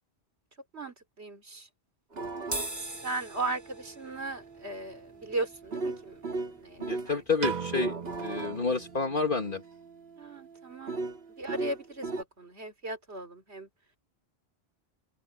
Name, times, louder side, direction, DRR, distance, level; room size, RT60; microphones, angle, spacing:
voice 1, 0.7-1.7 2.8-6.2 6.5-7.2 10.2-11.0 11.4-13.7, right 2 dB, 90° right, 3.9 m, -37 dB
sound 1, 2.1-7.1 7.5-12.2, right 3 dB, 70° right, 2.0 m, -39 dB
sound 2, 2.4-9.0, right 1 dB, 15° right, 1.5 m, -44 dB
voice 2, 6.8-7.9 8.2-9.6, left 4 dB, 55° left, 2.2 m, -29 dB
Piano, 7.4-9.7, right 6 dB, 50° right, 0.8 m, -38 dB
open air
omnidirectional pair, 1.1 m